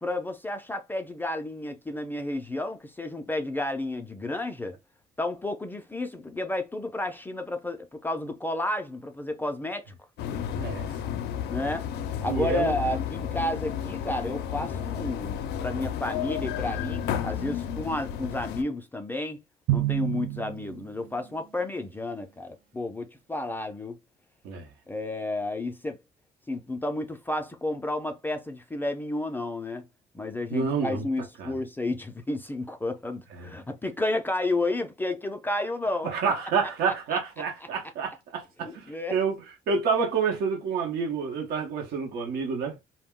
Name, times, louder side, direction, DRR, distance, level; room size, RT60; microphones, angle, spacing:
voice 1, 0.0-4.8 5.2-9.9 11.5-19.4 19.7-24.0 24.9-26.0 26.5-29.9 30.1-36.3 38.6-39.2, left 2 dB, 10° left, 0.4 m, -31 dB
sound 1, 10.2-18.6, left 9 dB, 75° left, 0.4 m, -32 dB
voice 2, 12.3-12.8 24.4-24.7 30.5-31.1 31.4-31.5 33.4-33.5 36.0-39.4 39.7-42.8, right 5 dB, 75° right, 0.8 m, -28 dB
Drum, 19.7-21.4, right 15 dB, 60° right, 0.4 m, -29 dB
2.2 x 2.1 x 3.5 m
cardioid pair, 110°, 17 cm